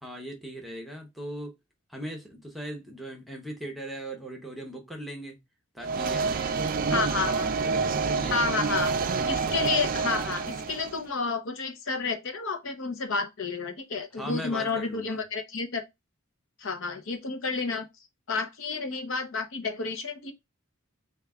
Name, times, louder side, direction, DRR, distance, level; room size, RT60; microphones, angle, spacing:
voice 1, 0.0-1.5 1.9-5.4 5.7-6.7 7.0-8.4 14.1-15.2, right 1 dB, ahead, 0.8 m, -39 dB
sound 1, 5.8-11.0, right 4 dB, 40° right, 0.3 m, -28 dB
voice 2, 6.9-7.5 8.3-8.9 9.3-15.8 16.6-17.9 18.3-20.3, left 4 dB, 65° left, 0.8 m, -30 dB
6.3 x 2.4 x 2.3 m
head